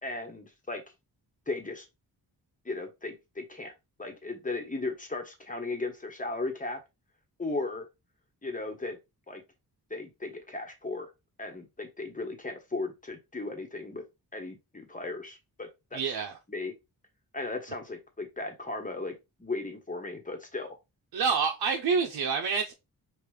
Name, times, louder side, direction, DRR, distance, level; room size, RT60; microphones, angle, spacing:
voice 1, 0.0-0.8 1.5-1.8 2.6-3.7 4.0-6.8 7.4-7.9 8.4-9.0 9.3-9.4 9.9-11.1 11.4-14.0 14.3-16.0 16.5-16.7 17.3-19.1 19.4-20.8, left 3 dB, 20° left, 1.2 m, -36 dB
voice 2, 15.9-16.4 21.1-22.7, right 5 dB, 80° right, 0.7 m, -27 dB
5.3 x 2.5 x 3.2 m
wide cardioid pair, 100°, 38 cm